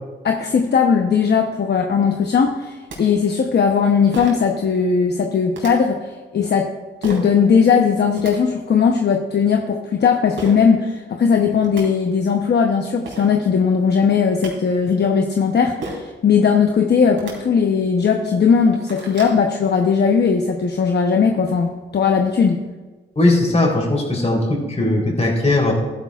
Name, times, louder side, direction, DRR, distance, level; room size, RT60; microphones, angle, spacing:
voice 1, 0.2-6.0 6.3-6.7 7.0-22.6, left 6 dB, 60° left, 3 dB, 0.9 m, -18 dB
sound 1, 2.9-3.0 4.1-4.5 5.5-5.7 7.0-7.3 8.0-8.3 10.4-10.6 11.3-11.4 11.6-11.8 12.7-12.8 13.1-13.3 14.1-14.5 15.8-16.1 17.1-17.3 18.0-18.1 18.5-19.4, right 3 dB, 80° right, 2.8 m, -33 dB
voice 2, 23.2-25.7, left 2 dB, 35° left, -1 dB, 3.7 m, -18 dB
13.0 x 11.5 x 2.4 m, 1.3 s
cardioid pair, 65°, 20 cm